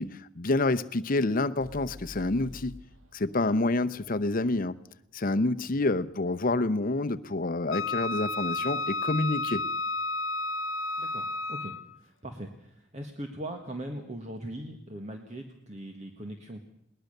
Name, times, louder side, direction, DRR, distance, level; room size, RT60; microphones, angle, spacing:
voice 1, 0.0-2.8 3.1-4.8 5.1-9.6, left 2 dB, 45° left, 0.8 m, -28 dB
sound 1, 1.6-5.5, left 2 dB, 75° right, 2.8 m, -50 dB
Wind instrument woodwind instrument, 7.7-11.9, left 2 dB, 80° left, 0.9 m, -32 dB
voice 2, 11.0-16.6, right 1 dB, 35° right, 1.7 m, -40 dB
21.0 x 19.5 x 6.7 m
head